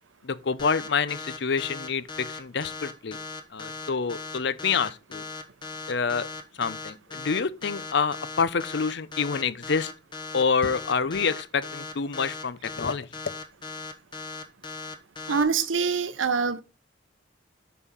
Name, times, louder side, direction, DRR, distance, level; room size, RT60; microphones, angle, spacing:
voice 1, 0.2-3.2 3.5-5.2 5.9-6.3 6.6-9.9 10.3-13.1, left 5 dB, 60° left, 0.6 m, -27 dB
sound 1, 0.6-15.4, left 3 dB, 25° left, 1.1 m, -38 dB
voice 2, 15.3-16.6, right 5 dB, 80° right, 0.7 m, -24 dB
6.4 x 5.5 x 5.6 m
head